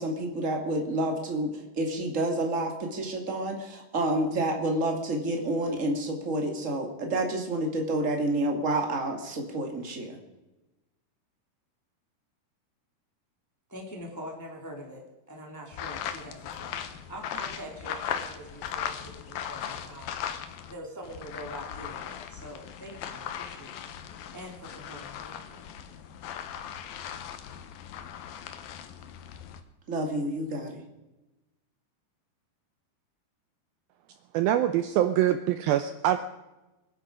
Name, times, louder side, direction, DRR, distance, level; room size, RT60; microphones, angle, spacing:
voice 1, 0.0-1.5 1.8-10.2 29.9-30.8, right 1 dB, 25° right, 2 dB, 1.9 m, -29 dB
voice 2, 13.7-20.1 20.6-24.0 24.3-25.7, equal, 5° left, 0 dB, 1.9 m, -44 dB
sound 1, 15.7-20.7 21.0-29.6, left 9 dB, 70° left, 2.6 m, -38 dB
voice 3, 34.3-36.2, right 12 dB, 75° right, 9 dB, 2.3 m, -24 dB
25.0 x 10.5 x 5.1 m, 1.0 s
omnidirectional pair, 4.7 m